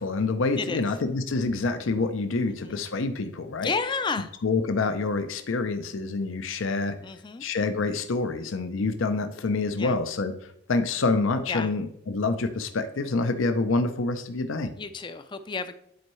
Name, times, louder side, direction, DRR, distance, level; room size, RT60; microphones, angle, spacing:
voice 1, 0.0-3.7 4.4-7.0 7.4-10.3 10.7-14.7, left 3 dB, 70° left, 8 dB, 0.6 m, -27 dB
voice 2, 2.5-2.8 3.6-4.3 7.0-7.4 9.8-10.0 11.5-11.7 14.8-15.7, left 4 dB, 20° left, 11 dB, 0.4 m, -31 dB
10.5 x 4.5 x 3.1 m, 0.76 s
head